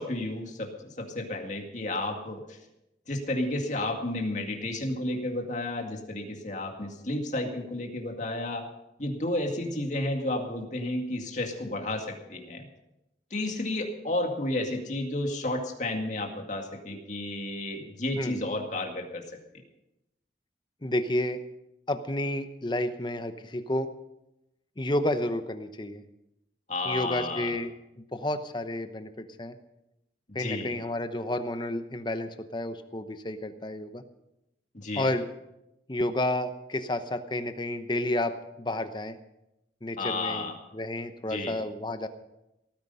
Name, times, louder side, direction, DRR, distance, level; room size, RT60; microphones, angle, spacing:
voice 1, 0.0-2.6 3.1-8.6 9.0-12.7 13.3-19.4 26.7-27.5 30.4-30.8 34.7-35.1 40.0-40.6 41.3-41.6, left 1 dB, 45° left, 2 dB, 2.1 m, -32 dB
voice 2, 20.8-21.4 21.9-23.9 24.8-26.0 26.8-29.5 30.3-34.0 35.0-35.3 35.9-39.2 39.8-40.5 40.7-42.1, left 1 dB, 25° left, 9 dB, 0.9 m, -31 dB
17.5 x 9.7 x 5.5 m, 0.90 s
head